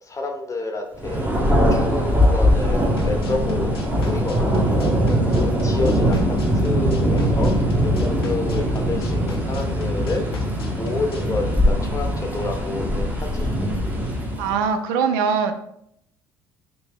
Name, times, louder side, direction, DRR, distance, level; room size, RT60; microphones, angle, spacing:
voice 1, 0.0-1.4 1.7-13.5, left 3 dB, 25° left, 3 dB, 0.8 m, -30 dB
Thunder, 1.0-14.6, equal, 15° right, 0.9 m, -21 dB
sound 1, 3.0-11.3, left 3 dB, 85° left, 0.4 m, -36 dB
voice 2, 14.4-15.5, right 6 dB, 65° right, 7 dB, 0.4 m, -21 dB
2.8 x 2.7 x 3.6 m, 0.73 s
figure-of-eight pair, 55°, 13 cm